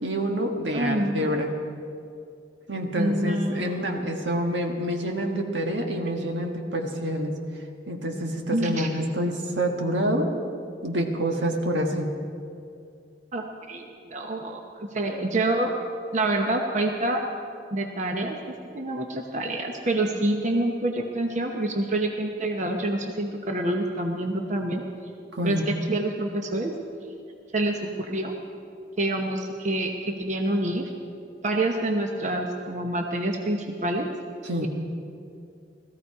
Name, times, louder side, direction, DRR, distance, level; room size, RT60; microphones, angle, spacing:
voice 1, 0.0-1.5 2.7-7.3 7.9-10.3 10.8-12.1 25.3-25.7 34.4-34.7, equal, 80° right, 2 dB, 1.6 m, -27 dB
voice 2, 0.7-1.4 3.0-3.8 8.5-8.9 13.3-15.7 16.1-17.2 17.7-24.8 25.4-26.7 27.5-28.3 29.0-30.8 31.4-34.1, right 1 dB, 40° right, 2 dB, 1.0 m, -27 dB
17.0 x 14.5 x 4.8 m, 2.5 s
head